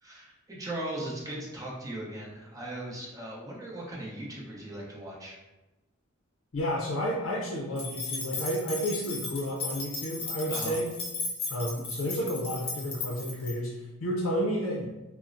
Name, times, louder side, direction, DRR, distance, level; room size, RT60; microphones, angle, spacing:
voice 1, 0.0-5.4 10.5-10.7, right 1 dB, 15° right, -4 dB, 0.7 m, -38 dB
voice 2, 6.5-10.9 11.5-14.9, equal, 75° left, -2 dB, 0.5 m, -31 dB
sound 1, 7.8-13.5, left 3 dB, 30° left, 0.5 m, -36 dB
4.3 x 2.0 x 2.5 m, 1.1 s
head